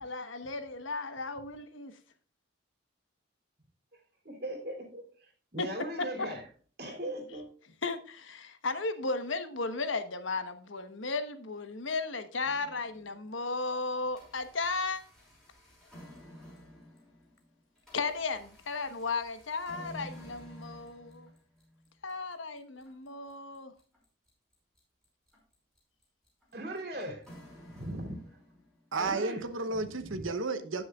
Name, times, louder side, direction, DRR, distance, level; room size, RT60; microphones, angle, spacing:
voice 1, 0.0-1.9 5.6-6.1 7.8-15.0 17.9-21.3 22.0-23.7, left 3 dB, 75° left, 1.2 m, -35 dB
voice 2, 4.2-6.4 6.8-7.5 26.5-27.3 27.7-28.2 28.9-29.4 30.0-30.2, right 1 dB, 50° right, 3.0 m, -39 dB
sound 1, 12.4-13.4 13.8-28.9, equal, ahead, 5.5 m, -52 dB
voice 3, 28.9-30.8, right 3 dB, 85° right, 1.0 m, -32 dB
18.0 x 6.4 x 2.4 m
head